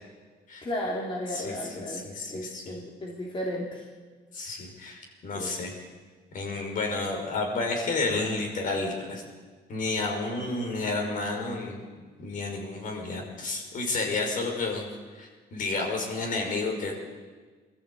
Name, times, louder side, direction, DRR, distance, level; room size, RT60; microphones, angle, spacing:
voice 1, 0.6-2.0 2.3-3.8 5.3-5.5, left 1 dB, 30° left, -2 dB, 3.3 m, -34 dB
voice 2, 1.3-2.8 4.3-5.8 6.3-9.2 9.7-11.8 12.2-14.9 15.1-16.9, left 3 dB, 55° left, 2 dB, 5.5 m, -31 dB
22.0 x 14.0 x 8.7 m, 1.4 s
cardioid pair, 110°, 17 cm